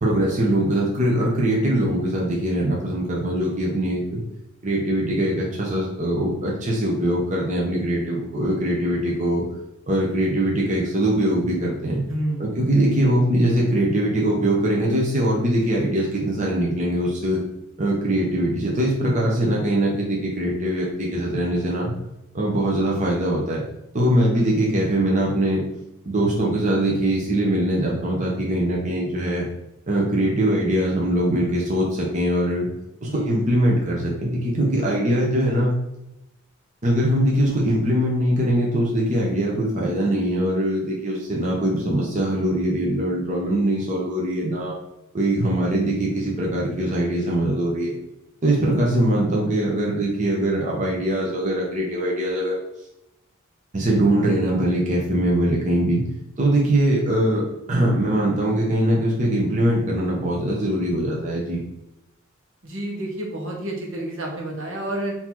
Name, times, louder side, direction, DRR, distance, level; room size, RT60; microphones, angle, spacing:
voice 1, 0.0-4.2 4.6-9.4 9.9-12.0 12.4-17.4 17.8-21.9 22.3-23.6 23.9-25.6 26.0-29.5 29.9-32.7 33.0-35.7 36.8-44.8 45.1-48.0 48.4-52.6 53.7-56.0 56.4-61.6, right 1 dB, 35° right, -3 dB, 0.8 m, -22 dB
voice 2, 12.1-12.5 33.0-33.3 62.6-65.1, right 1 dB, 70° right, -1 dB, 1.2 m, -29 dB
4.0 x 2.8 x 4.4 m, 0.89 s
head